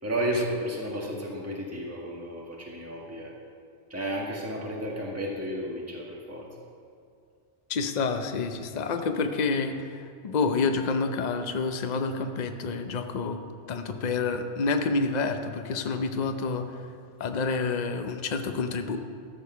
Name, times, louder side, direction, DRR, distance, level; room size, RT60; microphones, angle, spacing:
voice 1, 0.0-3.3 3.9-6.5, right 1 dB, 15° right, -3 dB, 1.7 m, -32 dB
voice 2, 7.7-13.4 13.7-16.9 17.2-19.0, left 4 dB, 45° left, 7 dB, 0.7 m, -28 dB
14.0 x 6.9 x 5.5 m, 2.3 s
omnidirectional pair, 1.2 m